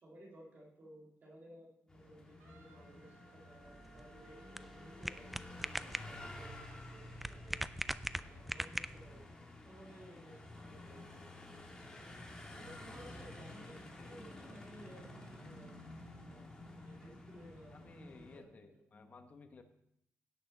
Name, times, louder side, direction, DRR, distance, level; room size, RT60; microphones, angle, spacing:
voice 1, 0.0-5.4 5.9-7.6 8.1-9.2 9.6-12.1 12.5-15.8 16.3-18.5, right 1 dB, 40° right, -4 dB, 2.1 m, -57 dB
sound 1, 1.9-18.4, left 1 dB, 15° left, 1.7 m, -52 dB
Wind instrument woodwind instrument, 2.4-6.8, right 3 dB, 85° right, 2.3 m, -64 dB
sound 2, 3.6-9.3, right 1 dB, 5° right, 0.3 m, -42 dB
voice 2, 17.7-19.6, left 4 dB, 35° left, 6 dB, 1.2 m, -57 dB
17.0 x 6.3 x 4.0 m, 0.74 s
cardioid pair, 135°, 5 cm